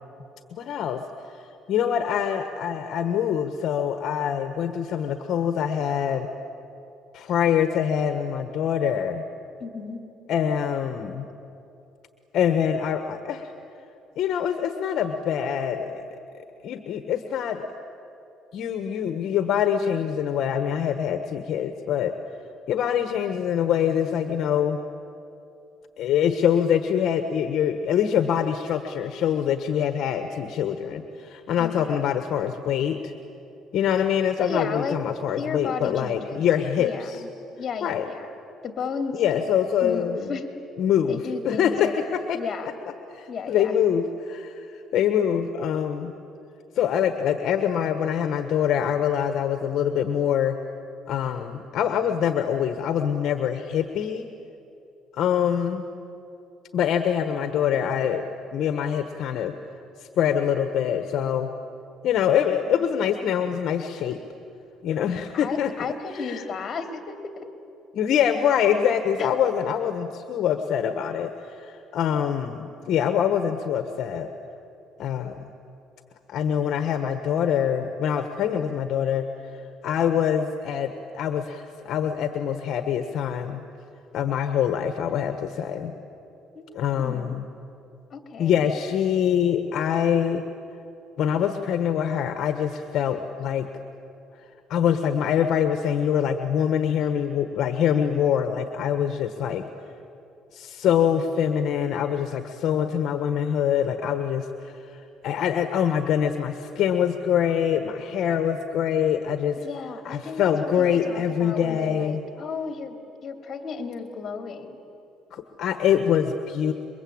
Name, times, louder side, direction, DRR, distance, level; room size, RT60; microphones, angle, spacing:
voice 1, 0.5-1.0 1.7-6.3 7.1-9.2 10.3-11.3 12.3-13.5 14.2-16.0 16.6-17.6 18.5-22.1 22.7-24.8 26.0-33.1 33.7-37.2 37.8-38.0 39.1-40.3 40.8-42.4 43.1-46.1 46.7-50.6 51.1-54.3 55.1-55.8 56.7-58.3 58.5-59.5 60.0-61.5 62.0-64.2 64.8-65.7 66.1-66.4 67.9-74.3 75.0-75.5 76.3-79.3 79.8-83.6 84.1-85.9 86.7-87.4 88.4-90.4 91.2-93.7 94.7-99.6 100.5-109.6 110.0-112.2 115.3-116.7, left 8 dB, 60° left, 7 dB, 1.3 m, -24 dB
voice 2, 9.6-10.0 31.6-32.2 34.4-35.0 35.4-36.4 36.8-37.3 37.6-38.3 38.6-39.2 39.8-40.5 41.1-42.7 43.3-43.7 62.5-62.8 65.3-67.5 69.2-69.3 86.5-87.5 88.1-88.7 109.6-110.5 110.8-114.8, left 5 dB, 40° left, 6 dB, 2.9 m, -34 dB
28.5 x 23.0 x 8.7 m, 2.8 s
cardioid pair, 115°, 0 cm